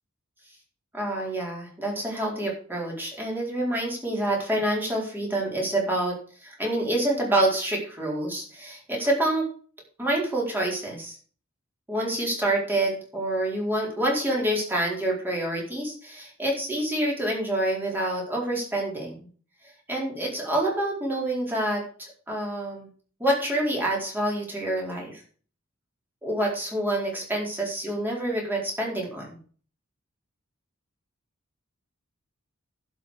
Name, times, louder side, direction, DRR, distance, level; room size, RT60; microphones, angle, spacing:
voice 1, 0.9-6.1 6.4-9.4 10.0-11.2 11.9-19.1 19.9-22.9 23.2-25.2 26.2-29.4, right 1 dB, 10° right, -2 dB, 4.5 m, -27 dB
11.5 x 6.0 x 6.7 m, 0.43 s
head